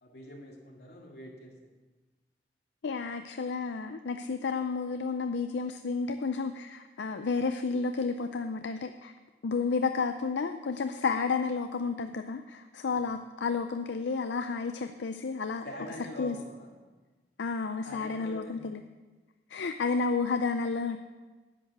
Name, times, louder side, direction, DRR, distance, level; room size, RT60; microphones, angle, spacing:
voice 1, 0.0-1.5 12.9-13.1 15.6-16.7 17.8-18.6, left 1 dB, 65° left, -1 dB, 2.4 m, -44 dB
voice 2, 2.8-9.1 9.4-15.6 16.2-16.4 17.4-18.8 19.5-21.0, left 4 dB, 85° left, 8 dB, 0.5 m, -31 dB
10.5 x 8.7 x 6.1 m, 1.3 s
head